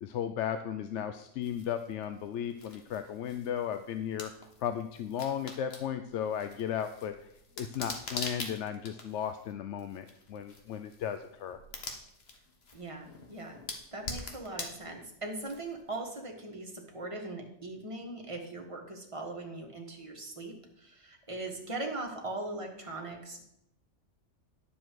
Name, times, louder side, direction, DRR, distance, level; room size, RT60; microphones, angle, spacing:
voice 1, 0.0-4.3 4.6-7.1 7.6-11.6, left 9 dB, 75° left, 9 dB, 0.9 m, -35 dB
sound 1, 1.4-16.0, left 3 dB, 60° left, 1.5 m, -45 dB
voice 2, 12.7-13.6 13.9-23.4, right 2 dB, 25° right, 1 dB, 1.6 m, -40 dB
10.0 x 7.1 x 4.6 m, 0.78 s
omnidirectional pair, 1.2 m